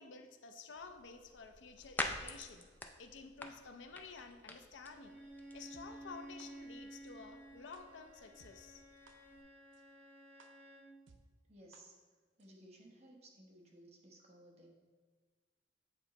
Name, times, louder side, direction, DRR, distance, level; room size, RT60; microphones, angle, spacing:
voice 1, 0.0-2.7 3.0-5.2 5.5-8.8, left 4 dB, 80° left, 6 dB, 0.5 m, -52 dB
sound 1, 0.7-9.4, left 2 dB, 10° left, 0.3 m, -48 dB
Bowed string instrument, 4.9-10.9, right 1 dB, 10° right, 1.1 m, -54 dB
sound 2, 5.7-5.8 6.4-6.5 7.1-7.2 7.7-7.8 8.4-8.5 9.1-9.2 9.7-9.8 10.4-10.5 11.1-11.2 11.7-11.8 12.4-12.5, right 4 dB, 85° right, 0.5 m, -61 dB
voice 2, 11.4-14.7, right 1 dB, 35° right, -1 dB, 1.0 m, -59 dB
8.1 x 3.0 x 4.1 m, 1.5 s
head